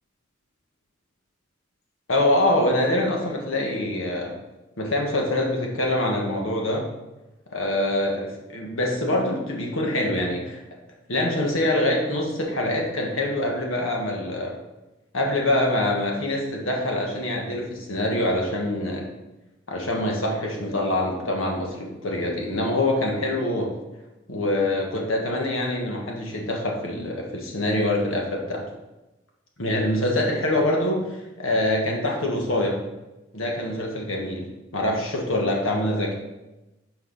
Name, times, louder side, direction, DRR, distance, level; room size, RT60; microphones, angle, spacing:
voice 1, 2.1-4.3 4.8-6.8 7.5-10.6 11.1-14.5 15.1-19.0 19.7-23.7 24.3-28.7 29.6-31.0 31.4-32.8 33.3-34.4 34.7-36.2, left 1 dB, 85° left, 0 dB, 1.7 m, -25 dB
6.0 x 4.8 x 6.1 m, 1.0 s
head